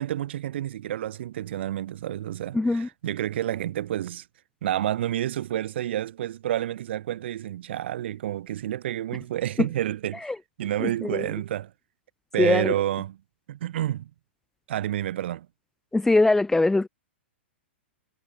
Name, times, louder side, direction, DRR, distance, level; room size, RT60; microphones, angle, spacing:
voice 1, 0.0-4.2 4.6-10.3 10.6-11.7 12.3-13.2 13.5-14.1 14.7-15.5, right 12 dB, 65° right, 5.5 m, -29 dB
voice 2, 2.5-2.9 9.6-9.7 10.2-10.4 10.8-11.3 12.4-12.7 15.9-16.9, left 2 dB, 5° left, 0.9 m, -22 dB
hypercardioid pair, 120°, 7 cm